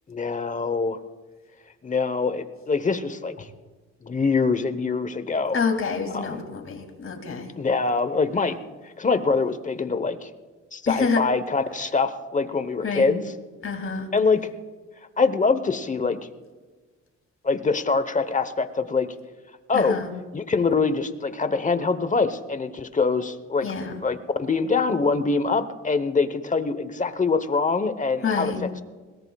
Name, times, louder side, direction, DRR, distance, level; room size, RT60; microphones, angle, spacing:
voice 1, 0.1-1.0 1.8-3.5 4.0-5.6 6.1-6.3 7.6-8.6 9.0-10.3 10.7-13.2 14.1-14.4 15.2-16.2 17.4-19.1 19.7-20.0 20.3-23.7 24.0-28.5, left 4 dB, 25° left, 11 dB, 1.0 m, -24 dB
voice 2, 5.5-7.5 10.9-11.2 12.8-13.1 13.6-14.1 19.7-20.1 23.6-23.9 28.2-28.6, left 5 dB, 45° left, 4 dB, 2.7 m, -27 dB
21.5 x 17.5 x 2.4 m, 1.3 s
cardioid pair, 90°, 30 cm